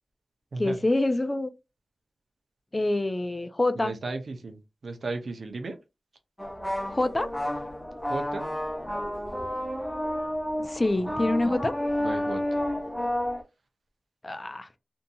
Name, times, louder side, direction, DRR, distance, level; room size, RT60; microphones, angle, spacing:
voice 1, 0.6-1.5 2.7-3.9 6.8-7.3 10.6-11.7 14.2-14.7, left 2 dB, 30° left, 0.4 m, -26 dB
voice 2, 3.8-5.8 8.1-8.5 11.1-11.5 12.0-12.6, right 3 dB, 75° right, 0.6 m, -35 dB
sound 1, 6.4-13.4, left 1 dB, 5° left, 0.9 m, -31 dB
2.7 x 2.6 x 2.3 m
wide cardioid pair, 80°, 0 cm